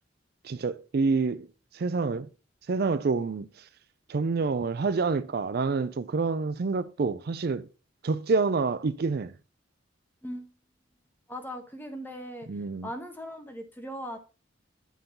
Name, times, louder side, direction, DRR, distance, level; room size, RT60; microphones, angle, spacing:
voice 1, 0.4-1.5 1.7-2.3 2.7-3.5 4.1-7.7 8.0-9.3 12.5-12.9, right 4 dB, 55° right, 0.4 m, -27 dB
voice 2, 11.3-12.5 12.8-14.2, equal, 10° left, 1.1 m, -39 dB
9.3 x 3.8 x 5.4 m
head